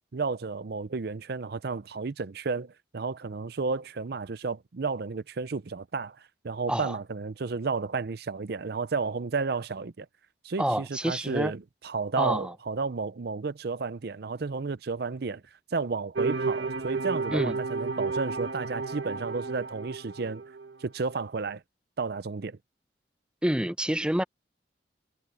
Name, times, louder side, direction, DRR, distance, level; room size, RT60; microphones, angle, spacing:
voice 1, 0.1-10.1 10.4-15.4 15.7-20.4 20.8-21.6 22.0-22.6, right 4 dB, 60° right, 0.6 m, -32 dB
voice 2, 10.6-11.5 12.2-12.5 17.3-17.5 23.4-24.2, right 1 dB, 5° right, 0.6 m, -27 dB
sound 1, 16.2-20.7, right 4 dB, 85° right, 1.6 m, -32 dB
head